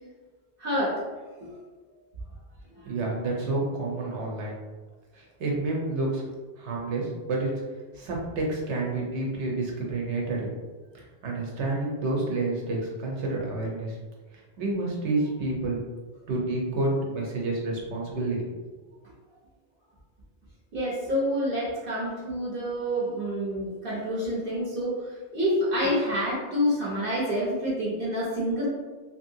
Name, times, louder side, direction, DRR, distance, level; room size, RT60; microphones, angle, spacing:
voice 1, 0.6-1.0 1.4-1.5 2.8-2.9 20.7-28.7, equal, 55° right, -7 dB, 0.9 m, -28 dB
voice 2, 2.8-4.5 5.1-6.2 6.6-7.5 7.9-10.5 11.2-14.0 14.6-15.8 16.3-18.4, right 2 dB, 85° right, -2 dB, 1.1 m, -29 dB
2.9 x 2.8 x 2.7 m, 1.3 s
omnidirectional pair, 1.1 m